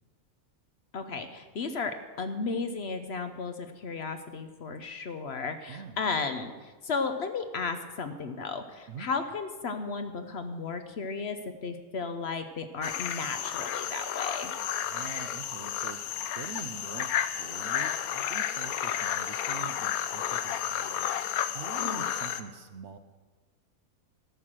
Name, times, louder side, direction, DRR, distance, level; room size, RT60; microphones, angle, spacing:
voice 1, 0.9-14.5 21.8-22.1, left 4 dB, 55° left, 8 dB, 0.9 m, -34 dB
voice 2, 5.7-6.0 8.9-9.1 14.8-23.0, right 7 dB, 60° right, 9 dB, 0.8 m, -45 dB
sound 1, 12.8-22.4, left 10 dB, 85° left, 1.1 m, -32 dB
13.5 x 6.3 x 7.4 m, 1.3 s
omnidirectional pair, 1.5 m